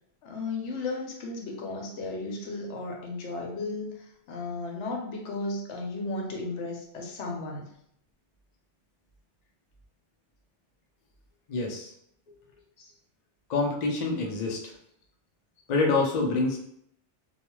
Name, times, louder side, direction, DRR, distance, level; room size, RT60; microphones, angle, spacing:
voice 1, 0.2-7.6 12.8-12.9, left 3 dB, 80° left, 0 dB, 0.9 m, -34 dB
voice 2, 11.5-11.9 13.5-14.6 15.7-16.6, left 3 dB, 55° left, 0 dB, 0.5 m, -26 dB
2.3 x 2.2 x 3.0 m, 0.70 s
omnidirectional pair, 1.2 m